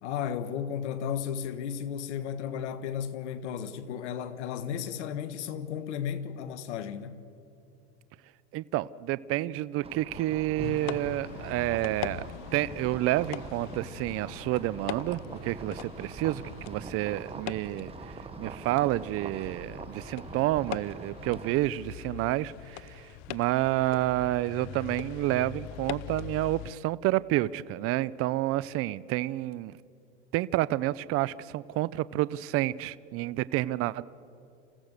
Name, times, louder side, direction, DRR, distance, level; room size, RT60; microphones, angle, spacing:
voice 1, 0.0-7.2, left 8 dB, 75° left, 1.5 m, -34 dB
voice 2, 8.5-12.2 12.5-17.9 18.4-23.0 23.3-29.7 30.3-34.0, right 16 dB, 40° right, 0.6 m, -29 dB
sound 1, 9.8-21.6, right 4 dB, 15° right, 1.2 m, -44 dB
sound 2, 10.6-26.7, left 15 dB, 50° left, 0.7 m, -42 dB
28.0 x 16.0 x 6.7 m
hypercardioid pair, 110°, 35 cm